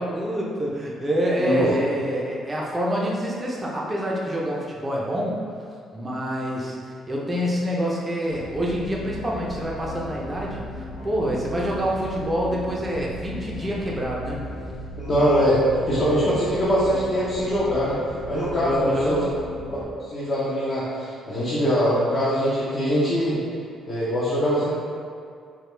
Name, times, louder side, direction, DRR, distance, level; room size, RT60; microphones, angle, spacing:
voice 1, 0.0-5.4 5.9-6.8 7.1-14.4 18.6-19.2, equal, 15° right, -3 dB, 0.6 m, -26 dB
voice 2, 1.4-1.7 15.0-15.6 15.9-18.0 18.3-19.3 20.1-23.4 23.9-24.7, equal, 35° left, -10 dB, 0.8 m, -22 dB
sound 1, 8.3-19.8, left 1 dB, 85° left, 1.0 m, -37 dB
4.7 x 2.3 x 3.3 m, 2.3 s
cardioid pair, 155°, 0 cm